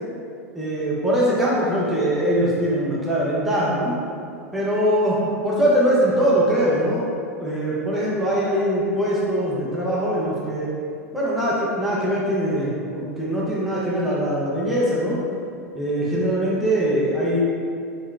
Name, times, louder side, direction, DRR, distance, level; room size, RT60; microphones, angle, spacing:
voice 1, 0.5-4.0 4.5-7.1 7.4-10.7 11.1-15.2 15.7-17.4, equal, ahead, -8 dB, 0.5 m, -22 dB
3.8 x 2.1 x 2.3 m, 2.4 s
hypercardioid pair, 95°, 8 cm